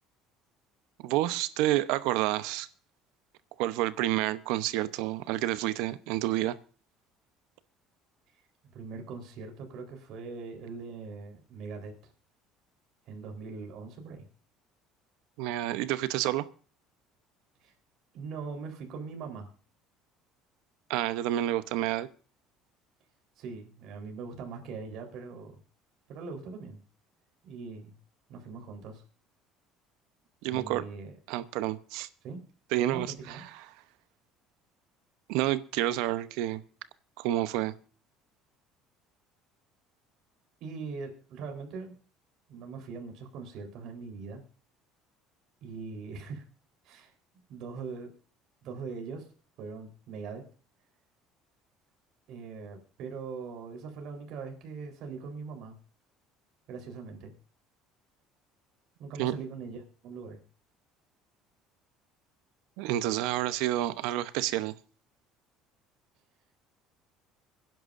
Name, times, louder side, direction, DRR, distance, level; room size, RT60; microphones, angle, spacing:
voice 1, 1.0-2.7 3.6-6.6 15.4-16.5 20.9-22.1 30.4-30.8 31.3-32.1 32.7-33.4 35.3-36.6 37.2-37.7 59.2-59.3 62.8-64.7, right 14 dB, 80° right, 0.8 m, -29 dB
voice 2, 8.7-12.1 13.1-14.2 17.6-17.7 18.1-19.5 23.4-25.6 26.1-26.8 27.4-27.9 28.3-29.0 30.5-31.1 32.2-32.4 32.9-33.4 40.6-41.9 42.5-44.4 45.6-46.4 46.8-47.1 47.5-48.1 48.6-49.3 49.6-50.4 52.3-55.8 56.7-57.3 59.0-60.4, right 4 dB, 65° right, 3.9 m, -41 dB
25.5 x 10.5 x 2.6 m
cardioid pair, 125°, 0 cm